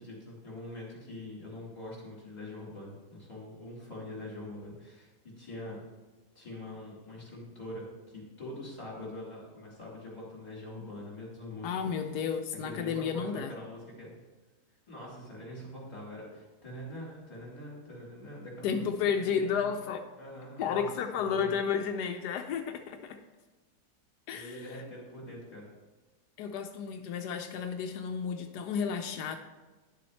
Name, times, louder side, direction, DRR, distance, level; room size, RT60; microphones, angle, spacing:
voice 1, 0.0-5.8 6.3-11.9 12.6-14.1 14.9-19.8 20.2-20.9 21.1-21.5 24.3-25.7, left 1 dB, 25° left, -5 dB, 3.4 m, -44 dB
voice 2, 11.6-13.5 18.6-20.1 20.6-23.2 24.3-24.6 26.4-29.4, left 7 dB, 85° left, 6 dB, 1.2 m, -32 dB
11.0 x 6.9 x 3.1 m, 1.3 s
omnidirectional pair, 1.7 m